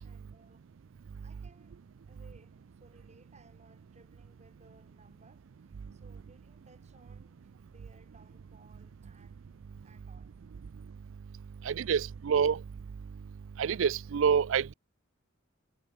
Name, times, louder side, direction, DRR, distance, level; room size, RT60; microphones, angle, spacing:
voice 1, 0.0-0.8 1.2-1.8 2.1-9.4 9.8-10.3, right 2 dB, 35° right, 5.7 m, -62 dB
voice 2, 11.6-12.6 13.6-14.7, right 7 dB, 65° right, 0.4 m, -27 dB
head